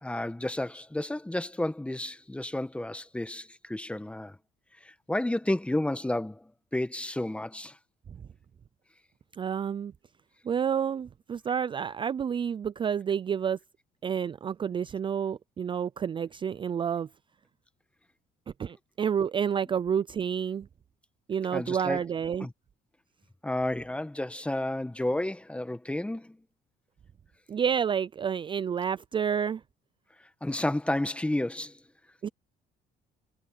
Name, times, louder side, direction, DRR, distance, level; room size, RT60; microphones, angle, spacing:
voice 1, 0.0-4.4 4.8-7.8 21.5-22.0 22.4-22.5 23.4-26.4 30.4-31.8, left 1 dB, 5° left, 1.3 m, -31 dB
voice 2, 9.4-9.9 10.4-13.6 14.0-17.1 18.6-20.7 21.3-22.5 27.5-29.6 32.2-32.3, right 7 dB, 30° right, 0.4 m, -29 dB
cardioid pair, 110°, 17 cm